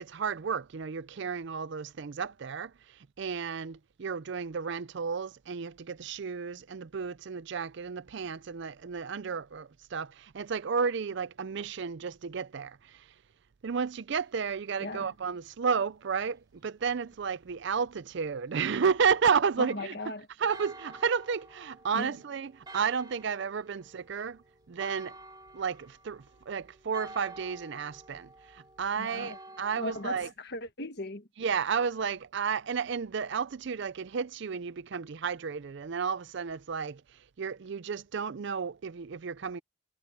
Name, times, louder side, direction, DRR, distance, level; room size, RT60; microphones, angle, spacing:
voice 1, 0.0-13.1 13.6-19.9 20.4-25.2 25.5-30.3 31.4-37.0 37.4-39.6, right 6 dB, 55° right, 0.4 m, -32 dB
voice 2, 19.6-20.2 21.9-22.1 29.0-29.4 29.8-31.3, left 1 dB, 50° left, 1.5 m, -37 dB
Church bell, 20.5-30.2, right 2 dB, 20° right, 2.3 m, -50 dB
head